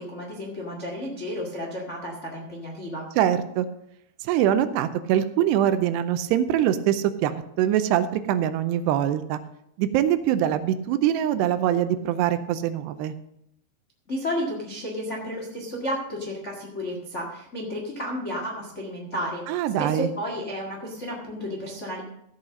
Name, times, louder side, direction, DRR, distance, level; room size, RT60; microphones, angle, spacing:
voice 1, 0.0-3.1 14.1-22.0, left 1 dB, 60° left, -1 dB, 0.7 m, -32 dB
voice 2, 3.2-3.7 4.2-9.4 9.8-13.1 19.5-20.1, right 11 dB, 85° right, 11 dB, 2.7 m, -23 dB
15.5 x 5.8 x 6.4 m, 0.77 s
omnidirectional pair, 4.9 m